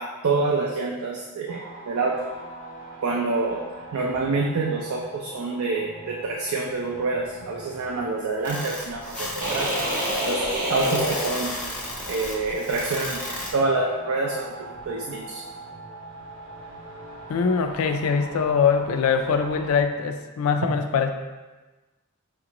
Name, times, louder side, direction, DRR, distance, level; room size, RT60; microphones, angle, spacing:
voice 1, 0.0-2.2 3.0-3.6 3.9-9.7 10.2-10.4 10.7-11.5 12.1-15.4, right 3 dB, 70° right, 0 dB, 0.4 m, -27 dB
sound 1, 1.5-19.8, right 2 dB, 90° right, 0.9 m, -42 dB
sound 2, 8.4-13.5, left 1 dB, 5° left, 0.5 m, -34 dB
sound 3, 9.4-12.0, equal, 40° right, 0.7 m, -27 dB
voice 2, 17.3-21.1, left 5 dB, 70° left, 6 dB, 0.3 m, -23 dB
5.9 x 2.5 x 2.9 m, 1.2 s
head